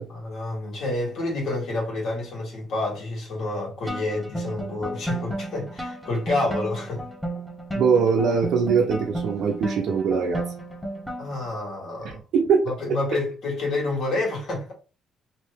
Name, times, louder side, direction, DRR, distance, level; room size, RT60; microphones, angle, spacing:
voice 1, 0.1-7.1 11.2-12.2 12.7-14.7, left 2 dB, 70° left, 1.8 m, -29 dB
sound 1, 3.9-11.5, right 1 dB, ahead, 1.0 m, -33 dB
voice 2, 7.7-10.5 12.3-12.7, right 5 dB, 80° right, 0.6 m, -21 dB
3.0 x 2.6 x 3.5 m
cardioid pair, 90°, 0 cm